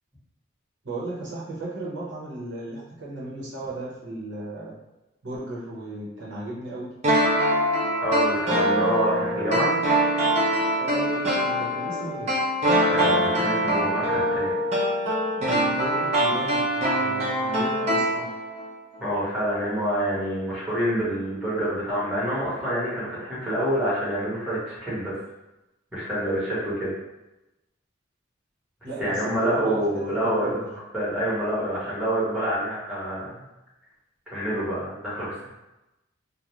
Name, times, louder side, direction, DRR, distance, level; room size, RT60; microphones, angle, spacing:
voice 1, 0.8-4.8 5.2-6.9 10.8-12.3 15.3-18.3 28.8-29.8 30.2-30.7, right 2 dB, 65° right, -6 dB, 0.8 m, -35 dB
sound 1, 7.0-18.7 18.9-19.0, equal, 35° right, 0.5 m, -23 dB
voice 2, 8.0-9.7 12.8-14.5 19.0-25.2 25.9-26.9 29.0-33.4 34.3-35.5, equal, 5° right, -11 dB, 0.9 m, -27 dB
2.4 x 2.1 x 3.0 m, 0.97 s
head